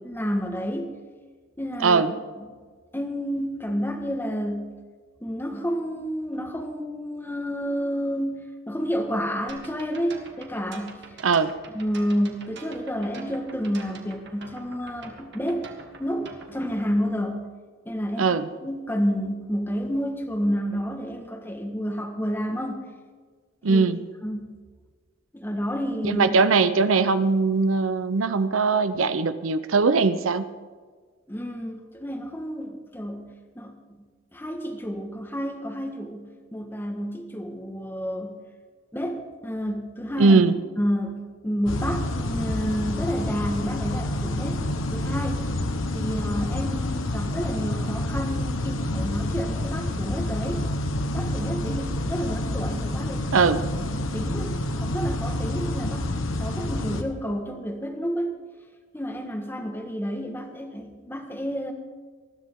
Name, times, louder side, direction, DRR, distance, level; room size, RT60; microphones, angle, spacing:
voice 1, 0.0-1.0 1.6-2.5 2.9-4.7 5.2-11.0 11.7-15.7 16.0-17.5 17.8-22.8 23.7-23.8 24.2-24.5 25.3-26.3 31.3-33.3 33.5-33.8 34.3-38.4 38.9-40.4 40.8-44.6 44.9-45.5 45.9-50.6 51.1-53.3 53.9-56.1 56.4-58.4 58.9-61.7, equal, 10° left, 4 dB, 1.5 m, -30 dB
sound 1, 9.5-16.8, right 3 dB, 60° right, 2.0 m, -45 dB
voice 2, 18.2-18.5 23.6-24.0 26.0-30.5 40.2-40.5 53.3-53.6, right 4 dB, 90° right, 12 dB, 0.7 m, -20 dB
sound 2, 41.7-57.0, left 1 dB, 80° left, 1.2 m, -28 dB
20.0 x 13.5 x 3.7 m, 1.5 s
head